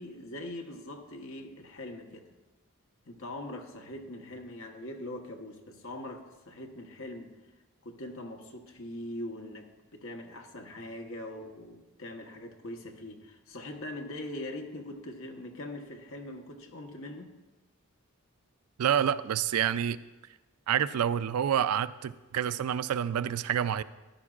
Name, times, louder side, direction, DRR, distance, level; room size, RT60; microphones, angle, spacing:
voice 1, 0.0-2.3 3.1-7.3 7.8-17.3, left 1 dB, 65° left, 3 dB, 1.1 m, -42 dB
voice 2, 18.8-20.0 20.7-23.8, right 9 dB, 85° right, 15 dB, 0.4 m, -28 dB
14.0 x 11.0 x 2.4 m, 1.2 s
head